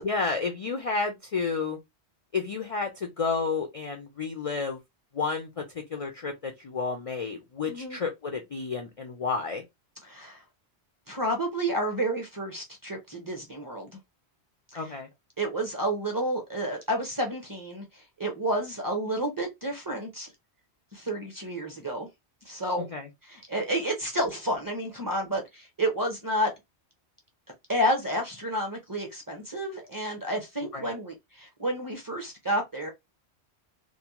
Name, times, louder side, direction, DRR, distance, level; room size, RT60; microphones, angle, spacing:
voice 1, 0.0-1.8 2.3-4.8 5.1-5.6 5.9-9.6 14.7-15.1 22.8-23.1 30.7-30.9, left 4 dB, 50° left, 0.4 m, -31 dB
voice 2, 7.7-8.0 10.0-10.4 11.1-13.9 14.7-14.9 15.4-20.3 20.9-22.1 22.5-22.9 23.2-26.5 27.7-32.9, right 1 dB, 25° right, 0.6 m, -30 dB
2.6 x 2.1 x 2.9 m
omnidirectional pair, 1.1 m